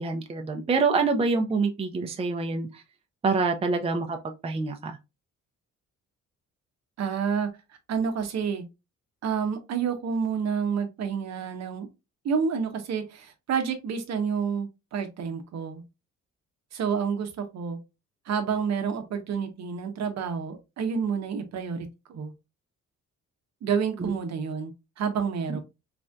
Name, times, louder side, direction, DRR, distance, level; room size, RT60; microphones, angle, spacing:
voice 1, 0.0-2.8 3.2-4.2 4.4-5.0 24.0-24.1 25.5-25.6, right 4 dB, 20° right, 0.5 m, -26 dB
voice 2, 7.0-7.5 7.9-8.7 9.2-11.9 12.2-15.8 16.7-17.8 18.3-22.3 23.6-25.6, right 6 dB, 60° right, 0.7 m, -29 dB
3.3 x 2.5 x 2.2 m
cardioid pair, 90°, 30 cm